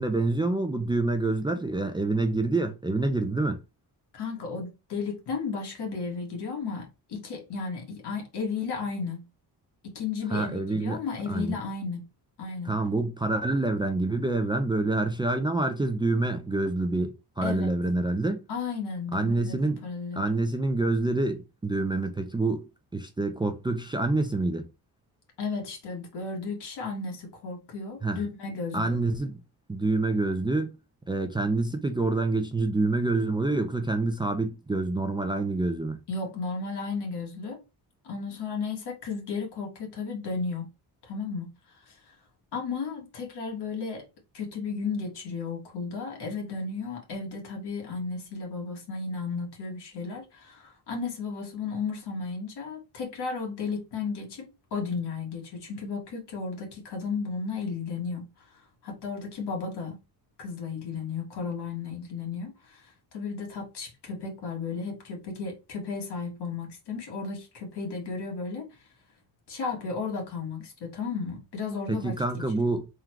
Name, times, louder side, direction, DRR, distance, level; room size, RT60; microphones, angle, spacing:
voice 1, 0.0-3.6 10.3-11.0 11.3-11.6 12.7-18.4 19.1-19.8 20.2-22.7 22.9-24.7 28.0-28.2 28.7-29.4 29.7-30.8 31.1-36.0 71.9-72.9, right 2 dB, 15° right, 0.3 m, -27 dB
voice 2, 4.1-9.3 9.8-12.1 12.4-12.8 17.4-17.7 18.5-20.4 25.4-29.0 36.1-37.6 38.0-40.7 41.0-42.1 42.5-44.1 44.3-60.0 60.4-68.9 69.5-72.2 72.6-72.7, left 4 dB, 80° left, 1.6 m, -34 dB
3.7 x 2.2 x 4.5 m
wide cardioid pair, 145°, 40 cm